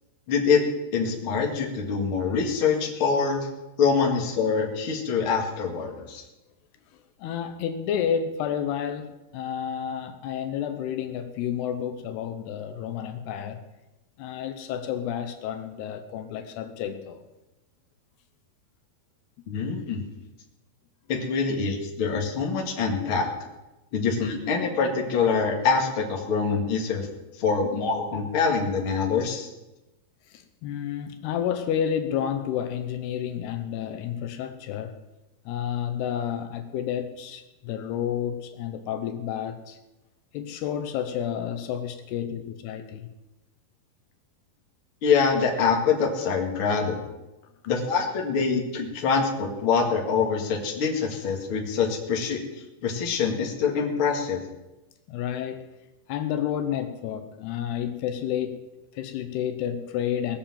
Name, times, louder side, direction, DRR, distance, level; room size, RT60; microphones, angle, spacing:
voice 1, 0.3-0.6 0.9-3.5 3.8-6.2 19.5-20.0 21.1-23.3 23.9-27.1 27.4-29.5 45.0-47.0 47.7-52.4 52.8-54.4, left 5 dB, 40° left, 0 dB, 2.3 m, -25 dB
voice 2, 7.2-13.6 14.2-17.2 30.3-34.9 35.5-39.8 40.3-43.1 55.1-55.7 56.1-58.6 58.9-60.4, left 9 dB, 80° left, 8 dB, 2.9 m, -30 dB
20.5 x 6.9 x 7.5 m, 1.0 s
omnidirectional pair, 4.7 m